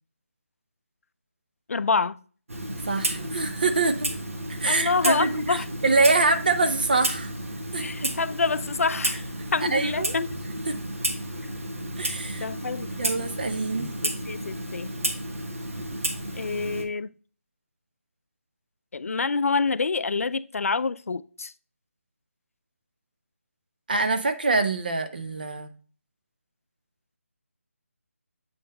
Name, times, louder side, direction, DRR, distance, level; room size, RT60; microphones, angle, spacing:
voice 1, 1.7-2.2 4.7-5.7 7.8-9.2 9.5-10.4 12.4-12.9 14.0-14.9 16.3-17.1 18.9-21.5, left 4 dB, 75° left, 0.3 m, -27 dB
Clock, 2.5-16.8, right 1 dB, 65° right, 1.4 m, -32 dB
voice 2, 2.9-4.1 4.5-7.3 7.7-8.1 9.6-10.1 10.7-10.8 12.0-12.5 13.0-13.9 23.9-25.7, right 3 dB, 40° right, 0.6 m, -25 dB
7.8 x 3.8 x 4.1 m
figure-of-eight pair, 175°, 8 cm